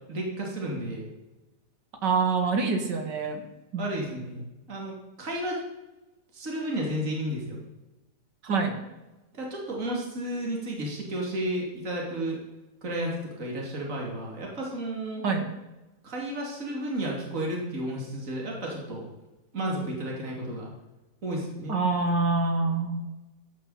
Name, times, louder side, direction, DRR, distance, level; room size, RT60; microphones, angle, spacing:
voice 1, 0.1-1.1 3.7-4.4 4.7-5.6 6.3-7.6 9.3-12.4 12.8-15.2 16.0-19.1 19.5-20.7 21.2-21.7, right 1 dB, 45° right, -1 dB, 3.3 m, -32 dB
voice 2, 2.0-3.4 3.7-3.8 8.4-8.7 15.2-15.5 21.7-23.0, right 4 dB, 75° right, 5 dB, 2.6 m, -25 dB
15.5 x 11.5 x 4.3 m, 1.0 s
omnidirectional pair, 1.9 m